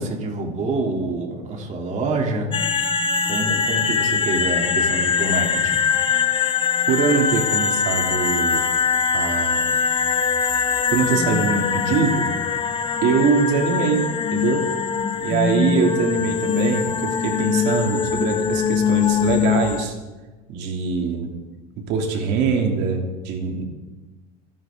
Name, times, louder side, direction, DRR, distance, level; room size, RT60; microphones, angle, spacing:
voice 1, 0.0-2.5 3.3-5.8, right 2 dB, 35° right, 0 dB, 3.5 m, -26 dB
sound 1, 2.5-19.9, left 6 dB, 25° left, 0.9 m, -22 dB
voice 2, 6.9-8.7 9.1-9.8 10.9-12.3 13.0-14.7 15.2-19.9 20.5-21.3 21.8-23.6, right 5 dB, 60° right, 2 dB, 3.0 m, -23 dB
26.0 x 11.0 x 3.9 m, 1.2 s
supercardioid pair, 125°, 20 cm